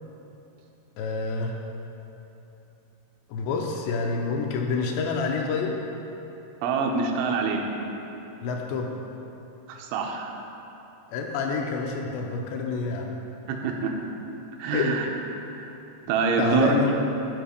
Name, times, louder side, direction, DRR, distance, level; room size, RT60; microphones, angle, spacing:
voice 1, 1.0-1.6 3.3-5.8 8.4-8.9 11.1-13.2 14.7-14.9 16.4-16.9, left 4 dB, 80° left, 1 dB, 2.7 m, -27 dB
voice 2, 6.6-7.6 9.7-10.3 13.5-13.9 14.6-15.1 15.6-15.7 16.1-16.7, right 5 dB, 85° right, 1 dB, 3.2 m, -25 dB
14.0 x 4.9 x 5.1 m, 3.0 s
omnidirectional pair, 5.3 m